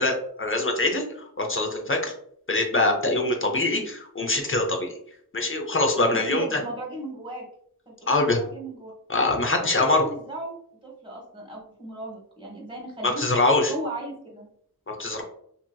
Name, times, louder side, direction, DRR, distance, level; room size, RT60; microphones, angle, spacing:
voice 1, 0.0-2.1 2.5-4.9 5.3-6.5 8.1-8.4 9.1-10.0 13.0-13.7 14.9-15.2, left 2 dB, 35° left, 3 dB, 0.6 m, -23 dB
voice 2, 6.1-7.4 7.9-8.9 9.5-13.2 13.7-14.5, right 1 dB, 15° right, -3 dB, 1.3 m, -36 dB
2.8 x 2.6 x 2.2 m, 0.66 s
wide cardioid pair, 80°, 38 cm